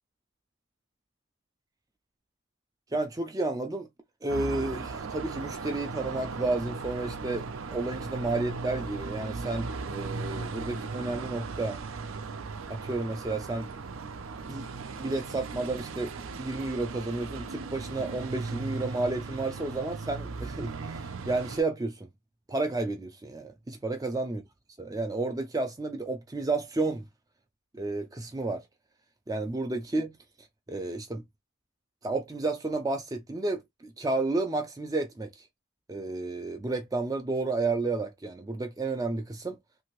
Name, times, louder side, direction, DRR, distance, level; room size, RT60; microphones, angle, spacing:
voice 1, 2.9-3.9 4.2-11.8 12.7-13.9 14.5-14.7 15.0-22.1 22.5-24.4 24.8-27.1 27.8-28.6 29.3-30.2 30.7-31.2 32.0-35.5 35.9-39.6, right 2 dB, 15° right, 0.3 m, -31 dB
sound 1, 4.3-21.6, right 4 dB, 80° right, 0.5 m, -37 dB
2.8 x 2.7 x 2.9 m
head